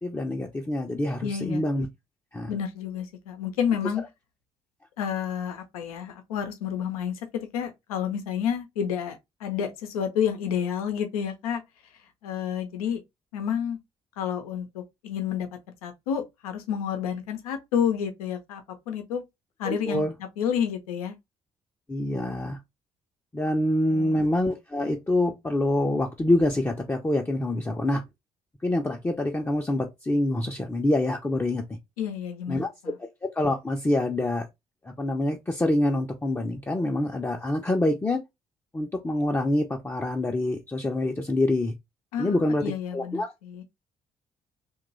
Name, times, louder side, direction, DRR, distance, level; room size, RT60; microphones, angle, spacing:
voice 1, 0.0-1.9 2.3-2.5 19.6-20.1 21.9-22.6 23.3-28.0 28.6-31.6 32.5-32.7 33.3-34.5 34.8-38.2 38.7-41.7 42.2-42.6 42.9-43.3, left 1 dB, 10° left, 0.6 m, -26 dB
voice 2, 1.2-1.6 2.5-4.0 5.0-11.6 12.2-13.0 13.3-13.8 14.2-15.5 15.8-19.2 19.6-20.0 20.4-21.2 23.9-24.2 32.0-32.9 42.1-43.6, left 8 dB, 75° left, 0.6 m, -30 dB
2.9 x 2.2 x 3.8 m
figure-of-eight pair, 40°, 19 cm